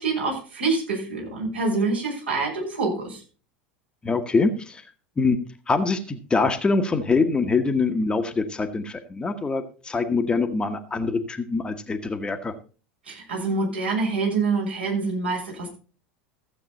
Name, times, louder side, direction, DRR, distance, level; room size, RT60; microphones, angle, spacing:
voice 1, 0.0-3.2 13.0-15.7, right 3 dB, 75° right, -3 dB, 6.5 m, -26 dB
voice 2, 4.0-4.8 5.2-5.4 5.7-12.5, left 4 dB, 15° left, 7 dB, 1.3 m, -24 dB
15.0 x 8.1 x 4.1 m, 0.36 s
figure-of-eight pair, 80°, 6 cm